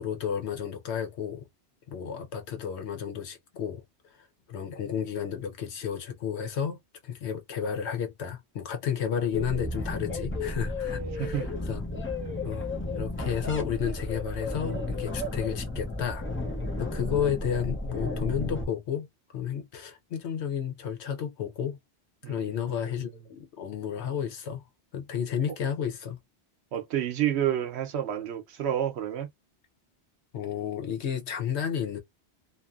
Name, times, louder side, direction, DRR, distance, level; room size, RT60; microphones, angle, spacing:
voice 1, 0.0-1.4 1.9-12.2 12.4-12.7 12.9-16.3 16.8-19.1 19.3-21.8 22.2-24.6 24.9-26.2 30.3-32.0, left 8 dB, 80° left, 1.0 m, -32 dB
sound 1, 9.3-18.6, left 2 dB, 20° left, 0.3 m, -33 dB
voice 2, 11.2-11.5 22.2-23.1 26.7-29.3, right 10 dB, 75° right, 0.9 m, -30 dB
2.6 x 2.5 x 2.4 m
omnidirectional pair, 1.1 m